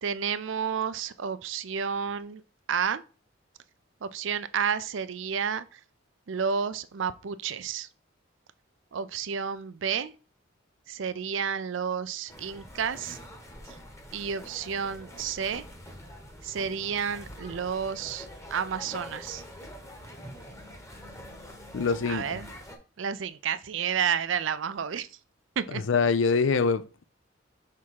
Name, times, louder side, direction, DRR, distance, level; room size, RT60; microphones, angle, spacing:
voice 1, 0.0-2.4 2.7-3.0 4.0-5.8 6.3-7.9 8.9-10.1 10.9-13.2 14.1-15.7 16.4-19.4 22.0-22.5 23.0-25.1 25.6-25.8, right 7 dB, 70° right, 0.5 m, -31 dB
sound 1, 12.3-22.8, equal, 15° left, 1.1 m, -45 dB
voice 2, 21.7-22.4 25.9-27.0, left 5 dB, 75° left, 0.5 m, -24 dB
5.9 x 3.6 x 4.7 m
head